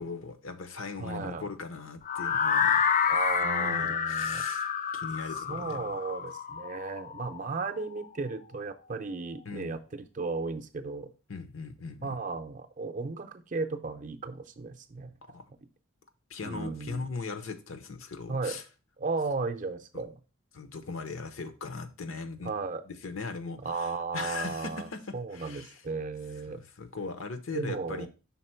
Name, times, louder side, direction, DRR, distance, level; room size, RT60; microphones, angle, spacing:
voice 1, 0.0-2.9 3.4-5.8 9.4-9.8 11.3-12.2 15.2-15.5 16.3-18.6 19.9-20.0 20.5-22.5 22.9-25.0 25.3-25.8 26.5-28.1, left 4 dB, 75° left, 0.8 m, -39 dB
voice 2, 1.0-1.5 3.1-4.4 5.5-11.1 12.0-15.1 15.5-15.6 16.4-17.1 18.3-18.6 19.0-20.1 22.4-22.8 23.6-24.9 25.1-26.6 27.5-28.1, right 4 dB, 40° right, 0.5 m, -35 dB
sound 1, 2.0-8.0, left 7 dB, 35° left, 0.3 m, -29 dB
5.8 x 4.0 x 4.3 m
head